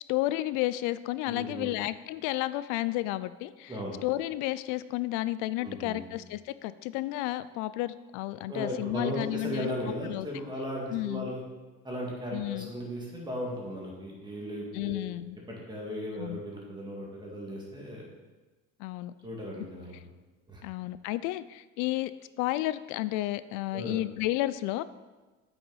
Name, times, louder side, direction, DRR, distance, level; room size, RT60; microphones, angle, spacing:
voice 1, 0.1-3.7 4.0-9.7 10.0-10.3 10.9-11.3 12.3-12.7 14.7-15.4 16.2-16.4 18.8-19.1 20.6-22.1 22.4-24.8, left 16 dB, 70° left, 16 dB, 0.5 m, -32 dB
voice 2, 1.3-1.7 3.7-4.0 5.6-6.0 8.5-11.4 11.8-15.0 15.5-18.1 19.2-19.9 20.5-20.6 23.7-24.0, equal, 15° right, -3 dB, 2.1 m, -36 dB
8.3 x 6.0 x 4.1 m, 1.2 s
cardioid pair, 125°, 31 cm